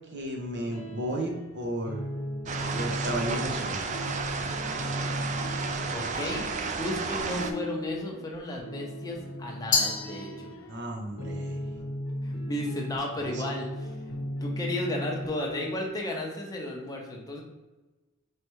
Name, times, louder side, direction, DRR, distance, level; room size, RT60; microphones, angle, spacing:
voice 1, 0.1-2.1 2.7-3.9 10.7-11.6 13.2-13.4, right 1 dB, 55° right, 1 dB, 0.9 m, -33 dB
sound 1, 0.6-15.9, equal, 85° left, 0.8 m, -37 dB
sound 2, 2.5-7.5, right 4 dB, 35° right, 0.4 m, -32 dB
voice 2, 5.9-6.5 6.8-10.5 12.2-17.4, left 1 dB, 15° left, -1 dB, 0.8 m, -34 dB
Glass, 9.7-10.9, left 5 dB, 60° left, 0.9 m, -29 dB
4.6 x 3.3 x 3.0 m, 1.1 s
head